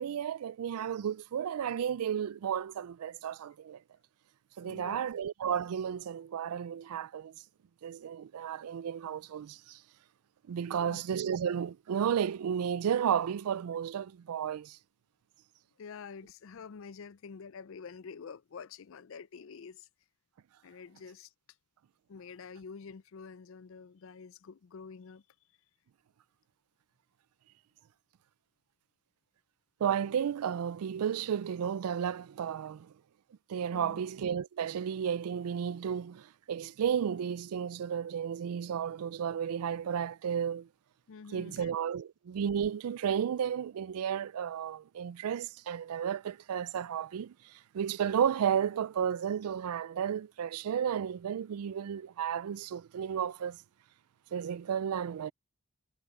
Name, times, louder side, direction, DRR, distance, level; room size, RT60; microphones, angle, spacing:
voice 1, 0.0-3.8 4.6-7.3 7.8-9.8 10.5-14.8 29.8-32.9 33.5-40.7 41.3-53.6 54.3-55.3, right 8 dB, 85° right, 0.4 m, -33 dB
voice 2, 4.6-5.1 10.7-11.0 15.8-19.9 20.6-21.3 22.1-25.2 33.7-34.0 41.1-41.7, left 5 dB, 60° left, 0.4 m, -47 dB
head